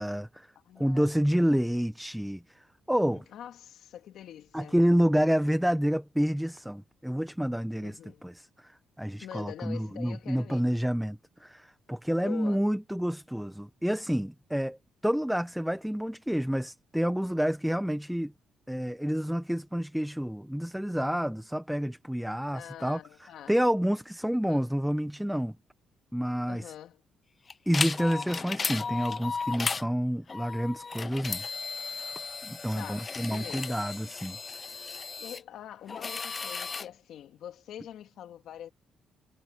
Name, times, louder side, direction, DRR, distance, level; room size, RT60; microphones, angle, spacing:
voice 1, 0.0-0.5 0.8-3.2 4.5-18.3 18.7-23.0 23.5-25.6 26.1-26.7 27.7-31.4 31.8-32.1 32.4-34.6, equal, 5° right, 0.9 m, -29 dB
voice 2, 0.6-1.6 3.1-4.8 7.8-8.2 9.2-10.6 12.2-12.7 22.5-23.5 24.5-24.7 26.5-27.0 32.7-33.8 35.2-38.7, left 10 dB, 75° left, 2.4 m, -45 dB
sound 1, 27.5-29.8 30.3-35.4 35.9-36.9, left 5 dB, 35° left, 0.4 m, -35 dB
cardioid pair, 90°, 0 cm